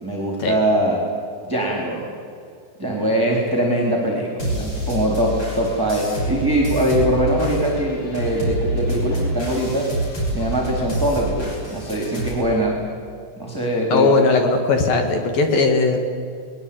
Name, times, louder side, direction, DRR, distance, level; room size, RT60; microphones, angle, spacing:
voice 1, 0.0-1.0 1.5-2.0 2.8-9.9 10.3-12.8 13.4-14.1, right 1 dB, 5° right, -1 dB, 2.9 m, -22 dB
sound 1, 4.4-12.3, right 1 dB, 25° left, 7.0 m, -27 dB
voice 2, 13.9-16.0, left 3 dB, 60° left, 5 dB, 3.0 m, -18 dB
21.5 x 21.0 x 8.8 m, 2.3 s
omnidirectional pair, 5.4 m